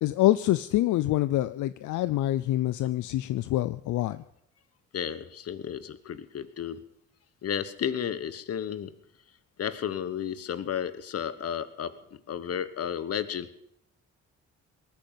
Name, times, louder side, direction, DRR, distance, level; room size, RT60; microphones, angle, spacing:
voice 1, 0.0-4.2, left 15 dB, 75° left, 14 dB, 0.6 m, -26 dB
voice 2, 4.9-6.8 7.4-8.9 9.6-11.9 12.3-13.5, left 8 dB, 55° left, 14 dB, 1.2 m, -32 dB
19.5 x 9.3 x 7.4 m, 0.75 s
cardioid pair, 90°, 30 cm